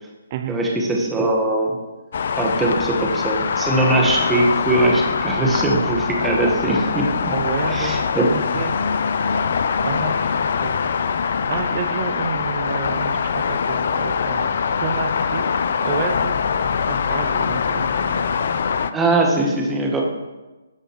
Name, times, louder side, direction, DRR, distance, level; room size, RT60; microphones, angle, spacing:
voice 1, 0.5-1.8 2.4-7.3 7.7-8.3 18.9-20.0, right 2 dB, 10° right, 0 dB, 1.7 m, -20 dB
sound 1, 2.1-18.9, left 6 dB, 55° left, 0.5 m, -23 dB
voice 2, 7.3-8.1 8.3-8.9 9.8-10.3 10.6-10.9 11.5-14.5 14.8-15.5 15.8-16.4 16.9-18.2, right 7 dB, 35° right, 10 dB, 0.8 m, -30 dB
13.0 x 5.1 x 4.8 m, 1.1 s
figure-of-eight pair, 140°, 0 cm